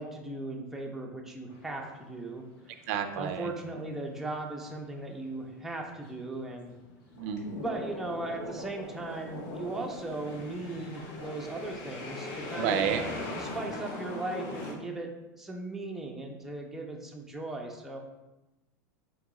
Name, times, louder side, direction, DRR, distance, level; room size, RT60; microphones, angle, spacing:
voice 1, 0.0-2.4 3.2-6.7 7.6-15.1 15.3-18.0, right 2 dB, 5° right, 0 dB, 0.5 m, -38 dB
sound 1, 1.5-2.4 2.8-14.7, left 2 dB, 50° left, 1.0 m, -41 dB
voice 2, 2.9-3.5 7.2-7.6 12.6-13.0, right 8 dB, 65° right, 7 dB, 0.4 m, -30 dB
sound 2, 7.1-11.3 11.7-12.1, left 2 dB, 85° left, 1.2 m, -42 dB
4.0 x 2.8 x 3.6 m, 1.0 s
supercardioid pair, 120°, 10 cm